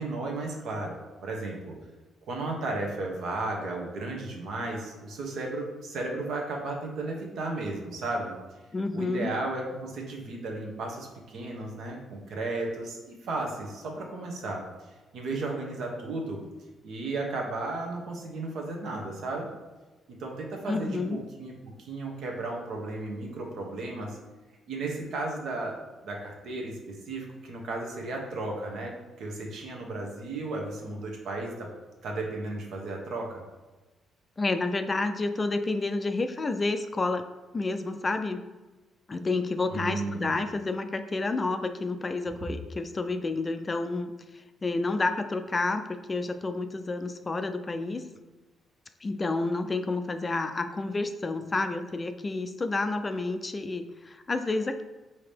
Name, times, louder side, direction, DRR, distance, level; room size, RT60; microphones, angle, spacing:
voice 1, 0.0-1.7 2.3-8.3 8.9-14.6 15.1-16.4 16.8-19.5 20.2-21.0 21.4-21.5 21.8-24.2 24.7-25.8 26.0-31.7 32.0-33.4 39.7-40.3, right 2 dB, 70° right, 0 dB, 1.0 m, -34 dB
voice 2, 8.7-9.3 20.7-21.2 34.4-37.2 37.5-38.4 39.1-48.0 49.0-54.8, left 3 dB, 30° left, 8 dB, 0.3 m, -30 dB
4.9 x 2.9 x 3.3 m, 1.2 s
cardioid pair, 90°, 0 cm